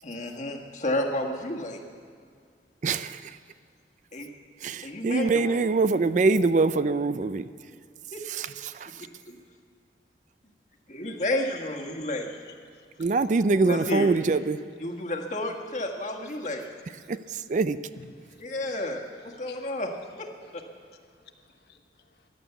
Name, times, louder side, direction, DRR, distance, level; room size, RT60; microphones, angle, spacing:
voice 1, 0.0-1.8 4.1-4.3 4.8-5.7 8.1-8.2 9.2-9.4 10.9-12.4 13.6-14.2 14.8-16.6 17.1-17.2 18.4-19.9 20.2-20.6, left 1 dB, 45° left, 1 dB, 1.5 m, -31 dB
voice 2, 2.8-3.4 4.6-7.5 8.3-8.9 13.0-14.6 17.1-17.8, right 3 dB, 45° right, 14 dB, 0.4 m, -24 dB
voice 3, 12.4-13.1 16.5-16.6 18.0-18.4 19.4-19.8 20.4-22.3, left 4 dB, 65° left, 5 dB, 1.1 m, -54 dB
15.0 x 11.0 x 8.1 m, 2.1 s
head